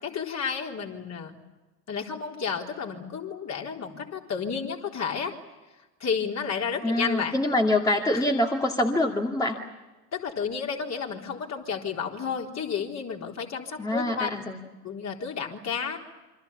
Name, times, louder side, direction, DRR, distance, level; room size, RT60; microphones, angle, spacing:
voice 1, 0.0-1.4 1.9-5.3 6.0-7.3 8.1-8.2 10.1-14.3 14.8-16.0, left 6 dB, 35° left, 0 dB, 4.1 m, -31 dB
voice 2, 6.8-9.6 13.8-14.6, left 1 dB, 5° left, 1 dB, 2.3 m, -25 dB
28.0 x 25.0 x 7.1 m, 1.1 s
hypercardioid pair, 80°, 49 cm